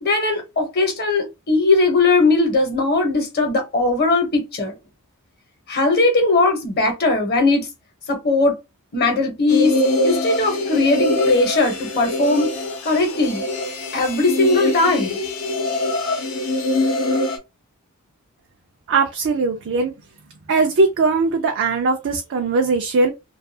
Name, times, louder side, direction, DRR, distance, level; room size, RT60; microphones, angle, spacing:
voice 1, 0.0-4.7 5.7-7.7 8.1-8.5 8.9-9.8 10.0-12.5 12.8-13.4 13.9-15.2, left 3 dB, 50° left, 0.9 m, -19 dB
sound 1, 9.5-17.4, left 1 dB, 85° left, 0.8 m, -23 dB
voice 2, 18.9-19.9 20.5-23.1, right 3 dB, 60° right, 0.4 m, -19 dB
2.3 x 2.3 x 2.7 m
head